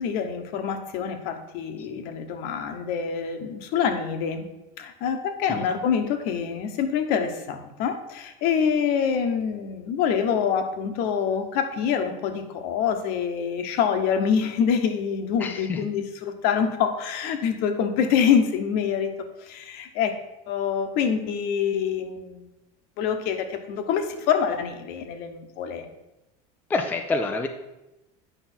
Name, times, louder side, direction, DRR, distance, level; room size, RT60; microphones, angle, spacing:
voice 1, 0.0-4.5 4.8-19.1 19.4-20.1 20.5-22.5 23.0-25.9, left 7 dB, 55° left, 7 dB, 1.0 m, -26 dB
voice 2, 15.4-15.8 26.7-27.5, left 3 dB, 10° left, 5 dB, 0.4 m, -27 dB
9.0 x 5.4 x 4.4 m, 0.95 s
cardioid pair, 155°, 19 cm